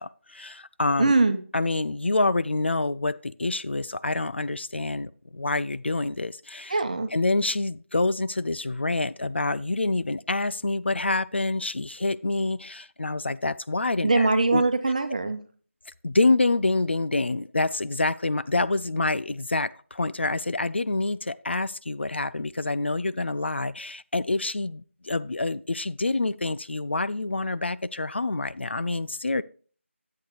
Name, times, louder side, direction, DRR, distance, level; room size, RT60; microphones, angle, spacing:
voice 1, 0.0-1.1 1.5-6.8 7.1-14.6 16.0-29.4, left 2 dB, 55° left, 16 dB, 0.4 m, -27 dB
voice 2, 1.0-1.4 6.7-7.1 14.0-15.4, right 3 dB, 35° right, 8 dB, 1.0 m, -22 dB
10.5 x 8.5 x 3.1 m, 0.42 s
figure-of-eight pair, 165°, 7 cm